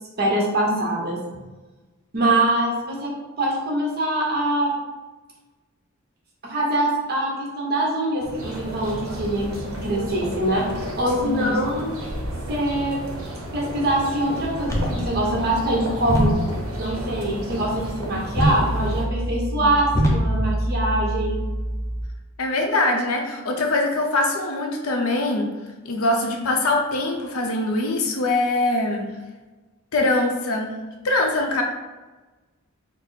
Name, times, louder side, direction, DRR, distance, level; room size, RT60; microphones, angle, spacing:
voice 1, 0.2-1.2 2.1-3.1 3.4-4.7 6.4-10.7 11.0-11.9 12.5-13.0 13.5-16.3 16.8-21.4, right 1 dB, 50° right, -2 dB, 1.0 m, -23 dB
sound 1, 8.2-19.1, right 1 dB, 75° right, 0.8 m, -33 dB
voice 2, 11.3-11.6 19.6-19.7 22.4-25.5 25.8-29.1 29.9-30.7 31.0-31.6, left 2 dB, 75° left, 2 dB, 0.6 m, -23 dB
sound 2, 14.6-22.0, equal, 15° left, 0.6 m, -25 dB
4.5 x 2.0 x 4.1 m, 1.2 s
head